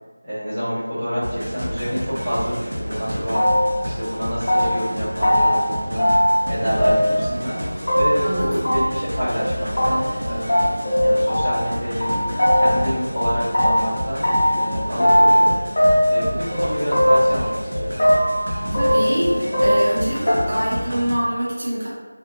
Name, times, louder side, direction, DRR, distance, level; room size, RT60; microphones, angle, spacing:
voice 1, 0.2-3.5 3.8-6.1 6.5-7.6 7.9-12.1 12.5-15.5 16.1-17.9, equal, ahead, -23 dB, 0.7 m, -27 dB
sound 1, 1.2-21.1, equal, 80° right, 0.7 m, -29 dB
sound 2, 3.3-3.8 4.1-4.9 5.2-5.6 6.0-6.5 6.8-7.3 7.9-8.3 8.6-8.7 9.0-9.1 9.4-9.5 9.8-9.9 10.1-10.2 10.5-11.7 12.0-12.9 13.1-14.7 15.0-15.5 15.8-16.6 16.9-17.4 17.6-18.4 18.7-20.0 20.3-20.4, equal, 30° left, 1.0 m, -18 dB
voice 2, 8.2-8.6 18.7-21.9, equal, 35° right, -8 dB, 0.6 m, -24 dB
2.5 x 2.3 x 2.9 m, 1.3 s
figure-of-eight pair, 175°, 0 cm